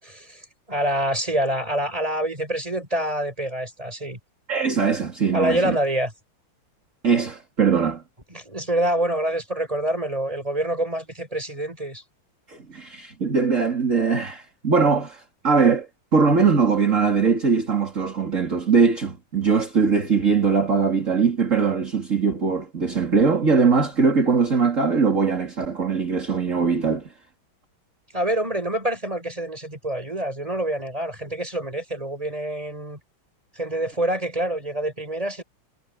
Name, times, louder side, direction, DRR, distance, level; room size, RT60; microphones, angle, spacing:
voice 1, 0.0-4.2 5.3-6.1 8.3-12.0 28.1-33.0 33.5-35.4, right 1 dB, 15° right, 7.2 m, -26 dB
voice 2, 4.5-5.8 7.0-8.0 12.5-15.9 16.1-27.1, right 5 dB, 35° right, 3.5 m, -21 dB
omnidirectional pair, 2.2 m